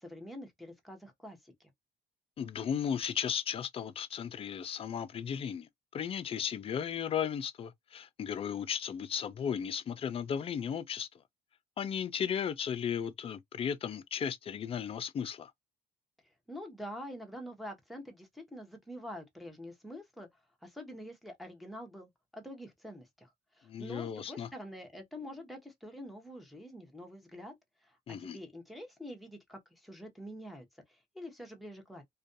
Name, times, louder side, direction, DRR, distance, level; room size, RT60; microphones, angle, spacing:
voice 1, 0.0-1.7 16.5-20.3 20.6-23.3 23.5-27.5 27.8-32.0, equal, ahead, 0.8 m, -46 dB
voice 2, 2.4-11.1 11.8-15.5 23.7-24.5 28.1-28.4, left 8 dB, 35° left, 0.4 m, -35 dB
2.4 x 2.2 x 2.6 m
cardioid pair, 110°, 17 cm